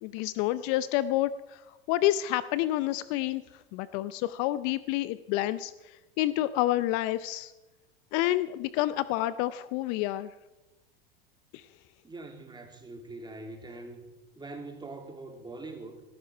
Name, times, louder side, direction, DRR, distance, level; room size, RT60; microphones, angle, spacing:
voice 1, 0.0-1.6 1.9-3.4 3.7-7.5 8.1-10.3 11.5-11.6, left 15 dB, 55° left, 16 dB, 0.6 m, -29 dB
voice 2, 12.0-14.1 14.3-16.0, right 2 dB, 15° right, 4 dB, 2.8 m, -43 dB
16.5 x 14.0 x 4.5 m, 1.1 s
hypercardioid pair, 85°, 29 cm